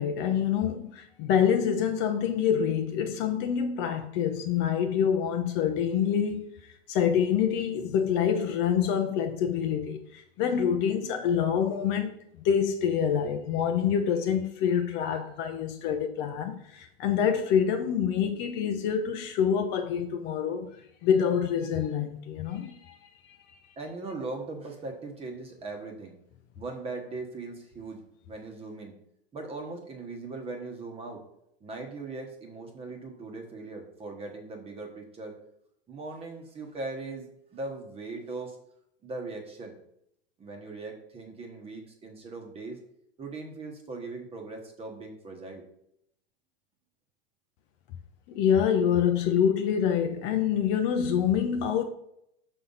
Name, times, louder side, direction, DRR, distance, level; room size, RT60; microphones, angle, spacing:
voice 1, 0.0-6.5 6.9-20.7 21.0-23.0 48.3-51.8, left 8 dB, 35° left, 0.7 m, -26 dB
voice 2, 23.8-26.2 26.6-29.0 29.3-31.2 31.6-35.4 35.9-37.3 37.5-38.6 39.0-39.7 40.4-42.8 43.2-45.7, right 3 dB, 20° right, 1.2 m, -39 dB
5.8 x 5.6 x 4.0 m
supercardioid pair, 135°, 31 cm